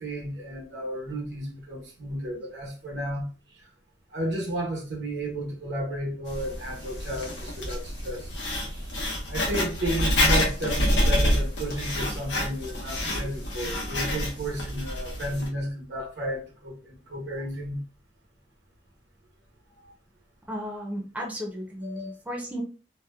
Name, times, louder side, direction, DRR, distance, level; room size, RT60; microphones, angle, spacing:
voice 1, 0.0-3.3 4.1-8.3 8.7-8.8 9.3-16.7 17.1-17.8 21.8-22.1, right 1 dB, 75° right, 1.0 m, -33 dB
Writing, 6.3-15.5, left 1 dB, 85° left, 0.9 m, -27 dB
voice 2, 20.5-22.6, equal, 10° right, 0.6 m, -34 dB
2.8 x 2.1 x 2.2 m
head